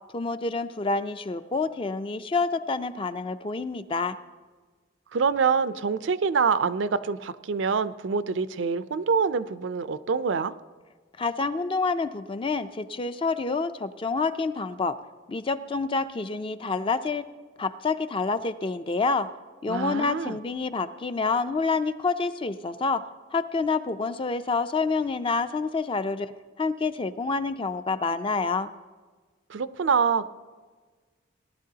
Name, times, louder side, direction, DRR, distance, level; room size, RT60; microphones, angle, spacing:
voice 1, 0.1-4.2 11.2-15.0 15.3-17.2 17.6-19.3 19.6-23.0 23.3-26.3 26.6-28.7, left 4 dB, 25° left, 11 dB, 0.4 m, -28 dB
voice 2, 5.1-10.5 19.7-20.4 29.5-30.3, right 5 dB, 70° right, 14 dB, 0.5 m, -25 dB
18.5 x 11.5 x 2.8 m, 1.4 s
head